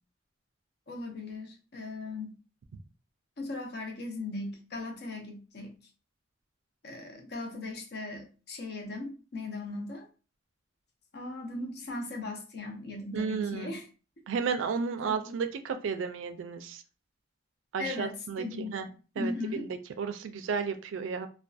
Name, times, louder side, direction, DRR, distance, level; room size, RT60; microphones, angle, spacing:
voice 1, 0.9-2.4 3.4-5.7 6.8-10.1 11.1-13.8 15.0-15.3 17.8-19.7, left 2 dB, 55° left, 3 dB, 0.6 m, -38 dB
voice 2, 13.1-13.8 14.3-16.8 17.7-18.9 19.2-19.3 19.6-21.3, right 5 dB, 85° right, 8 dB, 0.3 m, -33 dB
2.5 x 2.2 x 2.3 m, 0.35 s
head